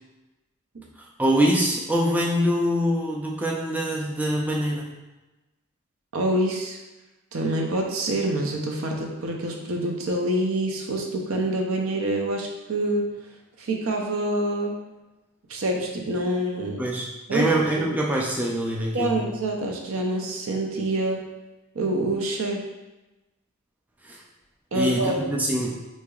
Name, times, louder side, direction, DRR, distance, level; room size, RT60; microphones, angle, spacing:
voice 1, 1.0-4.9 16.8-19.2 24.0-24.2 24.7-25.8, equal, 5° right, -2 dB, 0.3 m, -24 dB
voice 2, 6.1-6.8 7.3-13.1 13.6-14.7 15.5-16.8 17.3-17.5 17.8-17.9 18.9-21.2 21.7-22.6 24.7-25.3, right 1 dB, 75° right, 1 dB, 0.6 m, -26 dB
4.6 x 2.8 x 2.3 m, 1.1 s
head